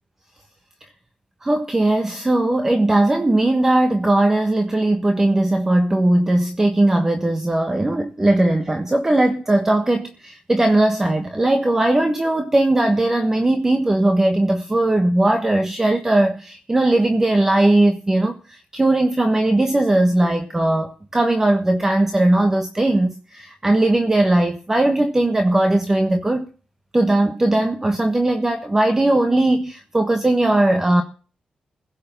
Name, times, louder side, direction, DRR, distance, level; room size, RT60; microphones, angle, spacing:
voice 1, 1.4-26.5 26.9-31.0, right 1 dB, 15° right, 1.4 m, -18 dB
16.5 x 6.5 x 7.0 m
wide cardioid pair, 125°, 3 cm